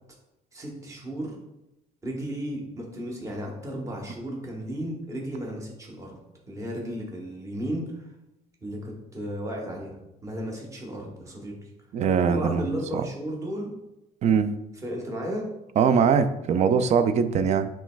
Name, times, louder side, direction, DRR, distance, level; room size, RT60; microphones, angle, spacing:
voice 1, 0.5-1.4 2.0-6.2 6.5-8.1 8.6-11.7 12.3-13.7 14.8-15.5, equal, 20° right, -1 dB, 1.0 m, -34 dB
voice 2, 11.9-12.6 12.9-13.0 14.2-14.5 15.8-17.7, right 6 dB, 45° right, 10 dB, 0.4 m, -21 dB
7.2 x 3.2 x 2.2 m, 0.91 s
cardioid pair, 110°, 17 cm